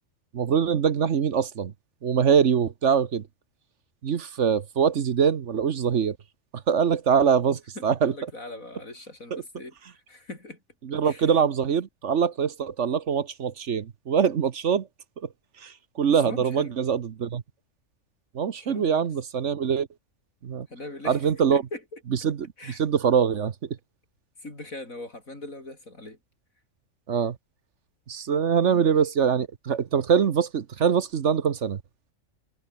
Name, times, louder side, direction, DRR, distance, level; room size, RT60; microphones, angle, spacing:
voice 1, 0.3-1.7 2.0-3.2 4.0-6.2 6.7-8.1 9.3-9.4 10.8-14.9 15.2-15.3 15.6-17.4 18.3-19.9 20.4-20.7 21.0-21.6 22.2-23.7 27.1-27.4 28.1-31.8, right 7 dB, 60° right, 1.3 m, -23 dB
voice 2, 7.5-10.6 11.0-11.3 16.1-16.8 18.6-19.1 20.7-21.2 21.5-22.0 22.6-22.8 24.4-26.2 28.6-28.9, left 2 dB, 70° left, 6.6 m, -40 dB
omnidirectional pair, 1.5 m